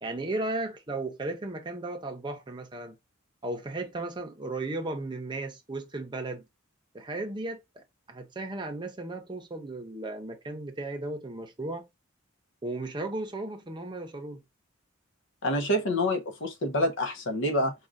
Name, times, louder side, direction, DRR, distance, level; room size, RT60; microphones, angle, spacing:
voice 1, 0.0-3.0 3.4-6.5 6.9-11.9 12.6-14.4, right 2 dB, 25° right, 0.7 m, -35 dB
voice 2, 15.4-17.7, left 1 dB, 65° left, 0.9 m, -27 dB
4.6 x 2.4 x 2.6 m
head